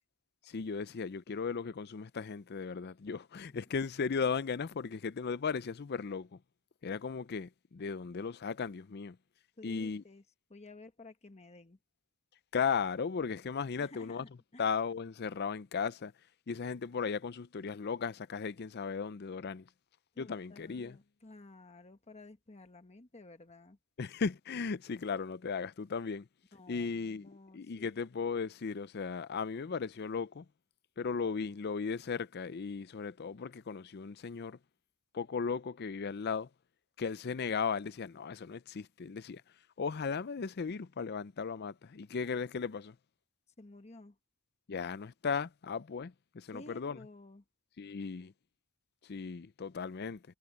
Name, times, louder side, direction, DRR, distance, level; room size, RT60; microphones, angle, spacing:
voice 1, 0.5-6.4 6.8-9.2 9.6-10.0 12.5-14.2 14.6-16.1 16.5-19.7 20.2-21.0 24.0-26.3 26.7-30.5 31.0-34.6 35.1-36.5 37.0-39.4 39.8-42.9 44.7-47.0 47.8-48.3 49.0-50.2, left 5 dB, 45° left, 0.5 m, -36 dB
voice 2, 9.6-10.2 10.5-11.8 13.8-14.7 20.1-23.8 26.5-27.9 43.6-44.2 46.5-47.4, left 2 dB, 30° left, 1.1 m, -53 dB
head